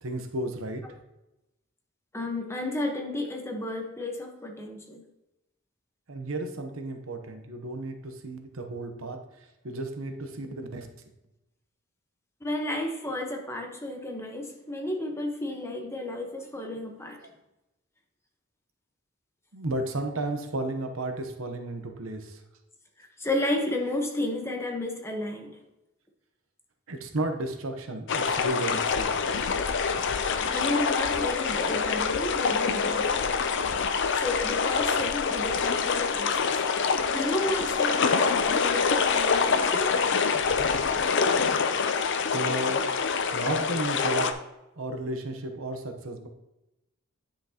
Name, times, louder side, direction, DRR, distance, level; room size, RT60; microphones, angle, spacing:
voice 1, 0.0-0.8 6.1-9.2 9.6-10.9 16.4-16.5 19.5-22.4 26.9-29.2 42.3-42.8 43.3-44.3 44.8-46.3, right 2 dB, 80° right, 5 dB, 1.0 m, -33 dB
voice 2, 2.1-5.0 12.4-17.2 23.2-25.6 30.5-33.3 34.1-36.5 37.1-39.9, left 1 dB, 15° left, 2 dB, 1.1 m, -32 dB
sound 1, 28.1-44.3, left 5 dB, 60° left, 0.6 m, -26 dB
9.8 x 6.0 x 2.9 m, 0.94 s
head